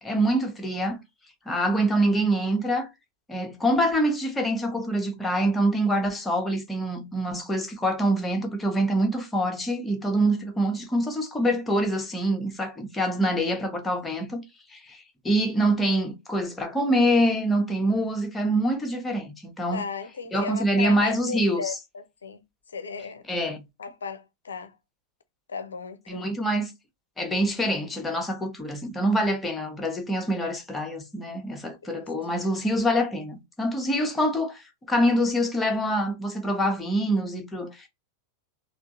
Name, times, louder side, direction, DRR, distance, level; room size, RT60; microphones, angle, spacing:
voice 1, 0.0-1.0 1.5-2.9 3.3-14.4 14.7-19.8 20.3-21.8 23.3-23.6 26.1-26.7 27.2-37.9, right 1 dB, 10° left, 0.9 m, -25 dB
voice 2, 19.7-22.4 22.7-23.2 23.8-24.8 25.5-26.3 32.0-32.1, left 5 dB, 70° left, 0.5 m, -35 dB
3.6 x 2.4 x 2.5 m
figure-of-eight pair, 90°, 0 cm